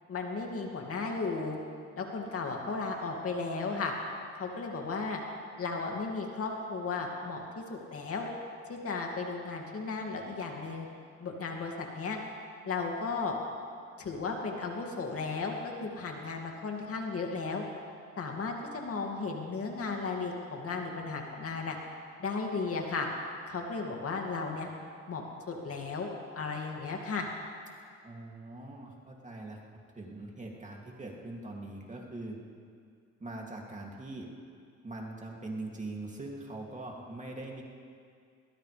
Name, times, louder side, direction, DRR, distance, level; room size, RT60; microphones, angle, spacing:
voice 1, 0.1-1.6 2.0-3.9 4.4-5.2 5.6-7.4 7.7-8.3 8.7-10.9 11.2-12.2 12.7-13.4 14.0-17.6 18.2-21.8 22.2-23.1 23.5-24.7 25.1-26.1 26.3-27.3, left 4 dB, 50° left, 0 dB, 2.5 m, -35 dB
voice 2, 28.0-29.6 29.9-32.4 33.2-34.3 34.8-37.6, right 2 dB, 25° right, -1 dB, 2.7 m, -42 dB
21.5 x 19.0 x 3.5 m, 2.2 s
cardioid pair, 90°, 30 cm